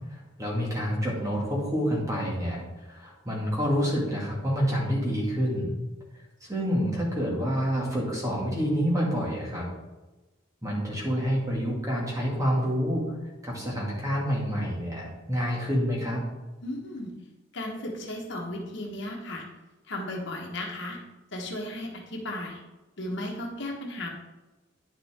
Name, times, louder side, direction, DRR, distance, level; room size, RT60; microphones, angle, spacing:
voice 1, 0.1-5.7 6.4-9.7 10.6-13.2 13.4-16.2, equal, 15° right, -3 dB, 2.1 m, -28 dB
voice 2, 16.6-17.1 17.5-19.5 19.9-21.0 21.3-22.6 23.0-24.1, left 1 dB, 60° left, 0 dB, 1.4 m, -35 dB
9.9 x 5.8 x 3.7 m, 1.1 s
head